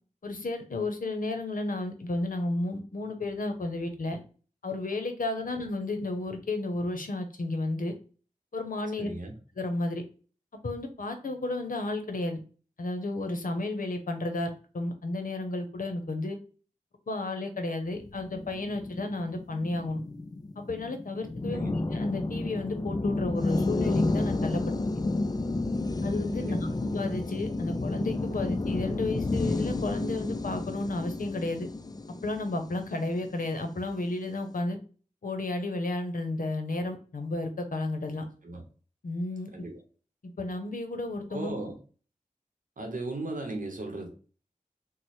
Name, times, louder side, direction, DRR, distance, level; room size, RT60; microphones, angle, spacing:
voice 1, 0.2-4.2 4.6-7.9 8.5-9.1 9.6-10.0 10.6-12.4 12.8-16.4 17.1-20.0 20.6-24.6 26.0-31.7 32.1-34.8 35.2-38.2 39.0-39.5 40.4-41.5, left 2 dB, 80° left, 6 dB, 0.7 m, -32 dB
voice 2, 9.0-9.3 21.5-21.8 26.4-26.6 38.4-38.6 39.5-39.8 41.3-41.8 42.8-44.1, right 2 dB, 70° right, 3 dB, 0.7 m, -36 dB
sound 1, 18.0-33.5, left 2 dB, 30° left, 0.3 m, -31 dB
3.1 x 2.0 x 4.1 m, 0.38 s
wide cardioid pair, 60°, 14 cm